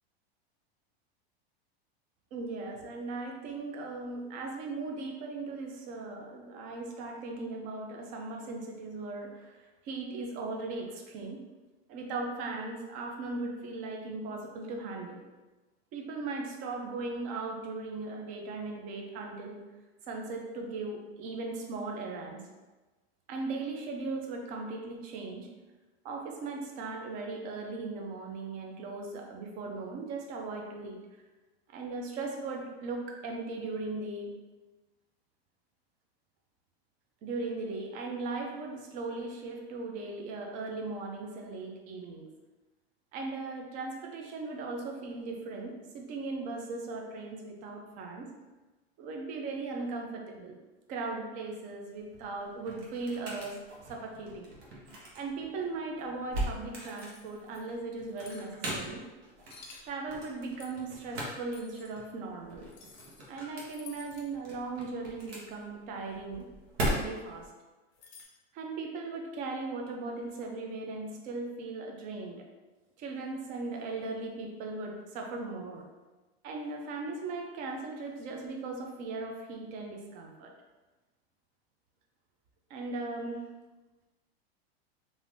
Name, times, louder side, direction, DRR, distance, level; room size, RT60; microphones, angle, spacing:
voice 1, 2.3-11.4 11.9-15.2 15.9-19.6 20.1-22.4 23.3-25.5 26.0-31.0 31.7-34.3 37.2-42.3 43.1-48.3 49.0-50.6 50.9-53.6 53.9-54.5 55.1-59.0 59.8-62.7 63.3-66.5 66.9-67.5 68.5-72.5 73.0-75.8 76.4-80.5 82.7-83.5, right 3 dB, 25° right, 1 dB, 0.3 m, -38 dB
sound 1, 51.9-67.5, right 1 dB, 70° right, 1.0 m, -40 dB
sound 2, 56.9-57.6 58.1-58.5 59.4-59.9 60.6-60.9 61.5-61.9 62.7-63.3 63.6-64.3 67.9-68.2, left 5 dB, 40° left, 0.5 m, -52 dB
3.1 x 2.5 x 2.5 m, 1.2 s
supercardioid pair, 145°, 31 cm